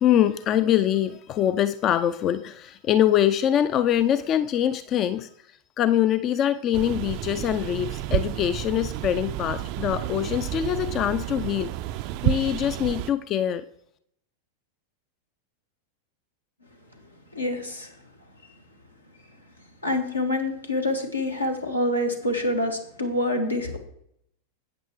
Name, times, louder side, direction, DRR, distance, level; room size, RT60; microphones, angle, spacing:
voice 1, 0.0-5.3 5.8-11.7 12.2-13.6, left 11 dB, 30° left, 0.3 m, -23 dB
sound 1, 6.7-13.1, right 14 dB, 45° right, 0.3 m, -30 dB
voice 2, 17.3-17.9 19.8-23.8, left 1 dB, 85° left, 1.4 m, -26 dB
12.0 x 8.6 x 3.1 m
figure-of-eight pair, 90°, 0 cm